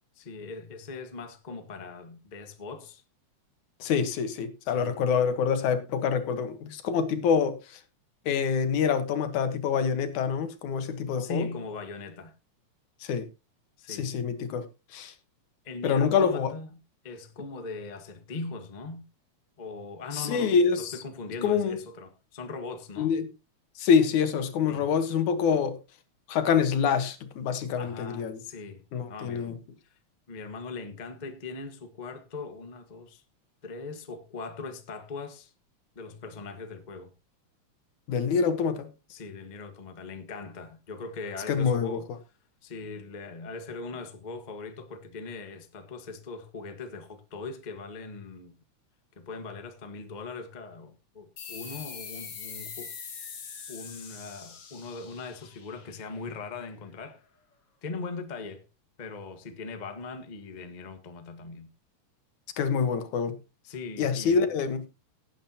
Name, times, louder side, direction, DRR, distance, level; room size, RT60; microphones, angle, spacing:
voice 1, 0.2-3.0 4.8-4.9 11.2-12.3 13.8-14.1 15.6-16.7 17.0-19.0 19.6-23.2 24.7-24.9 27.8-29.6 29.9-30.0 30.3-33.2 33.6-35.5 35.9-37.1 39.1-42.1 42.6-48.5 49.2-52.9 53.7-57.2 57.8-58.6 59.0-61.7 63.6-64.4, left 4 dB, 25° left, 0.9 m, -40 dB
voice 2, 3.8-7.8 8.3-11.5 13.0-13.3 13.9-14.7 14.9-15.1 15.8-16.5 20.1-20.9 21.4-21.8 23.0-23.3 23.8-25.8 26.3-28.4 28.9-29.5 38.1-38.9 41.5-42.0 62.6-63.4 64.0-64.8, left 6 dB, 85° left, 2.8 m, -26 dB
sound 1, 51.4-56.5, left 6 dB, 55° left, 2.9 m, -43 dB
18.0 x 8.8 x 2.9 m
omnidirectional pair, 3.3 m